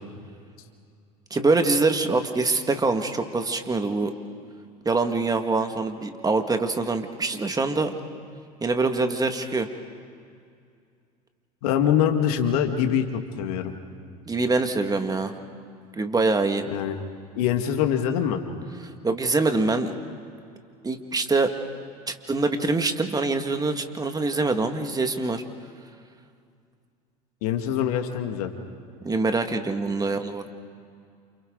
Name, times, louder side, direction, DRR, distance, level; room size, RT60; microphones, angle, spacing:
voice 1, 1.3-4.1 4.9-7.9 8.6-9.7 14.3-15.3 15.9-16.7 19.0-19.9 20.8-21.5 22.1-25.4 29.0-30.5, right 3 dB, 20° right, 6 dB, 2.1 m, -24 dB
voice 2, 11.6-13.7 16.7-16.9 17.4-18.4 27.4-28.5, left 9 dB, 70° left, 5 dB, 2.1 m, -24 dB
29.0 x 28.5 x 4.0 m, 2.3 s
hypercardioid pair, 75°, 20 cm